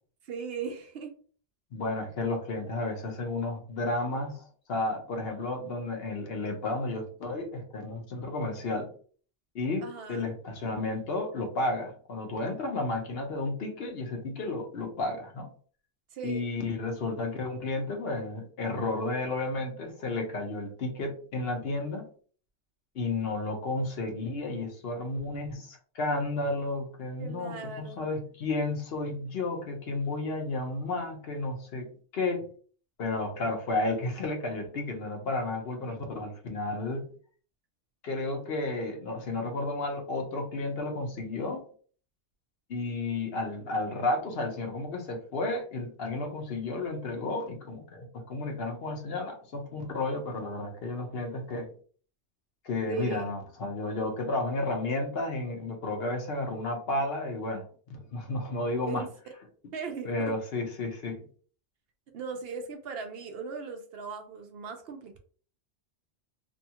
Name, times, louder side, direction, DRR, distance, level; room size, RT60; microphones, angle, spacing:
voice 1, 0.2-1.1 9.8-10.3 16.1-16.5 27.2-28.1 35.8-36.1 52.9-53.3 58.9-59.1 59.7-60.3 62.1-65.2, right 5 dB, 65° right, 6 dB, 0.7 m, -38 dB
voice 2, 1.7-8.9 9.5-15.5 16.2-22.1 22.9-32.4 33.0-37.1 38.0-41.6 42.7-51.7 52.6-59.0 60.0-61.2, left 2 dB, 65° left, 3 dB, 0.9 m, -32 dB
2.7 x 2.3 x 2.8 m, 0.44 s
omnidirectional pair, 1.1 m